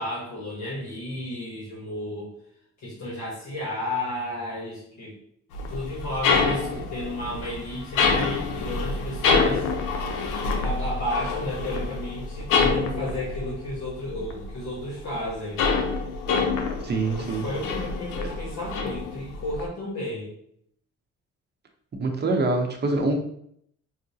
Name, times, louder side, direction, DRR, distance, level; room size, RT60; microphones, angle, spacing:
voice 1, 0.0-2.3 2.8-5.1 5.7-9.7 10.6-15.6 17.2-20.3, left 1 dB, 70° left, -5 dB, 1.1 m, -33 dB
sound 1, 5.5-14.7 15.0-19.7, left 4 dB, 85° left, 0.6 m, -26 dB
voice 2, 16.8-17.5 22.0-23.1, right 3 dB, 35° right, 3 dB, 0.7 m, -24 dB
4.7 x 2.1 x 2.7 m, 0.68 s
cardioid pair, 90°, 30 cm